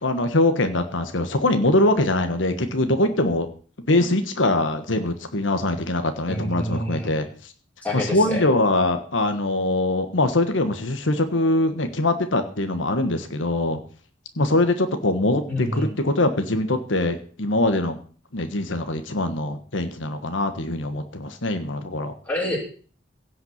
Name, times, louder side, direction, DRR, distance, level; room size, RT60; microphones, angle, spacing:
voice 1, 0.0-3.5 3.9-7.3 7.9-13.8 14.4-18.0 18.3-22.1, left 2 dB, 85° left, 7 dB, 1.4 m, -23 dB
voice 2, 6.3-7.2 7.8-8.5 15.5-15.9 22.2-22.6, left 1 dB, 10° left, -4 dB, 5.3 m, -27 dB
16.5 x 5.8 x 8.0 m, 0.42 s
head